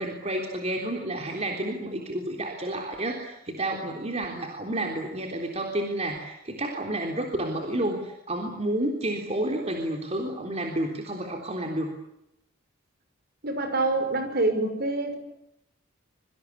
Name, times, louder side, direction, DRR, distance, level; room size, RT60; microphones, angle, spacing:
voice 1, 0.0-11.9, right 1 dB, 30° right, 2 dB, 3.6 m, -30 dB
voice 2, 13.4-15.2, right 2 dB, 45° right, 8 dB, 5.6 m, -26 dB
26.5 x 25.0 x 8.5 m, 0.83 s
head